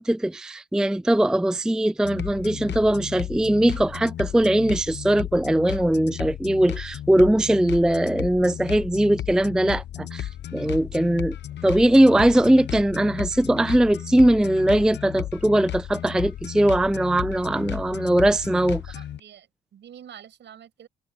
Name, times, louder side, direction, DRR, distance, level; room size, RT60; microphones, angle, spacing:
voice 1, 0.0-11.4 11.6-18.8, right 1 dB, 5° right, 0.4 m, -20 dB
sound 1, 2.0-19.2, left 12 dB, 60° left, 1.0 m, -34 dB
voice 2, 18.9-20.9, right 9 dB, 65° right, 6.4 m, -47 dB
cardioid pair, 90°, 20 cm